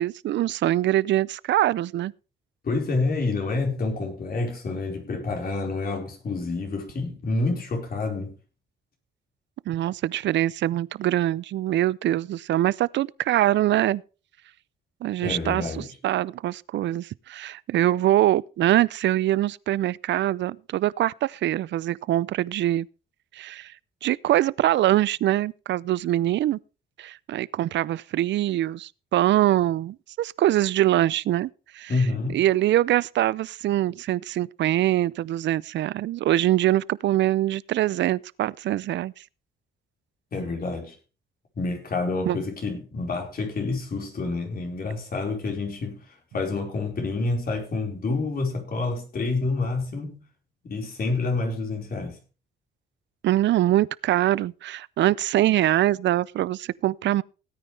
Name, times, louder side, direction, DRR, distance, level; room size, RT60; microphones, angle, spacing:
voice 1, 0.0-2.1 9.7-14.0 15.0-22.9 23.3-23.7 24.0-26.6 27.0-31.9 32.3-39.1 42.3-42.4 53.2-57.2, right 13 dB, 65° right, 0.5 m, -23 dB
voice 2, 2.6-8.3 15.2-15.9 31.9-32.4 40.3-40.9 41.5-46.0 46.3-50.2 50.6-52.2, left 3 dB, 50° left, 4.8 m, -28 dB
17.0 x 9.3 x 3.3 m
cardioid pair, 90°, 20 cm